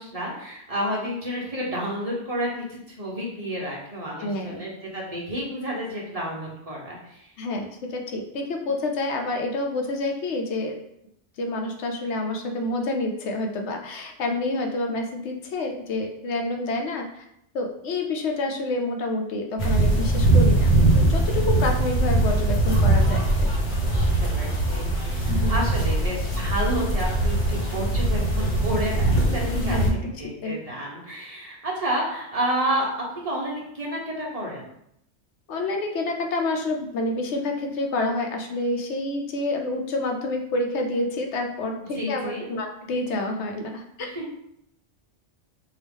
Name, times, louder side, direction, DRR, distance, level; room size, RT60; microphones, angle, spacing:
voice 1, 0.0-7.3 23.9-29.8 30.2-32.9 33.1-34.6 41.7-42.4 44.1-44.3, equal, 35° right, -4 dB, 0.8 m, -30 dB
voice 2, 4.2-4.6 7.4-10.8 11.4-17.2 17.5-23.5 25.3-25.6 29.5-30.1 30.4-30.5 35.5-44.1, left 2 dB, 80° left, 2 dB, 0.9 m, -28 dB
sound 1, 19.6-29.9, right 2 dB, 50° left, 1.0 m, -21 dB
4.6 x 2.4 x 3.5 m, 0.75 s
omnidirectional pair, 1.2 m